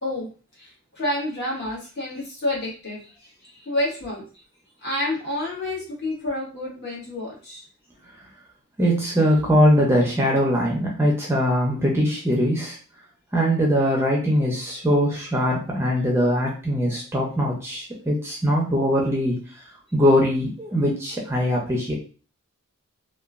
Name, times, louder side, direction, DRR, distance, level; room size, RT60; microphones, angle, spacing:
voice 1, 0.0-4.2 4.8-7.6, left 1 dB, 50° left, -5 dB, 1.4 m, -29 dB
voice 2, 8.8-12.8 13.3-19.4 19.9-21.9, equal, 10° right, -2 dB, 0.5 m, -21 dB
2.9 x 2.2 x 2.4 m, 0.37 s
head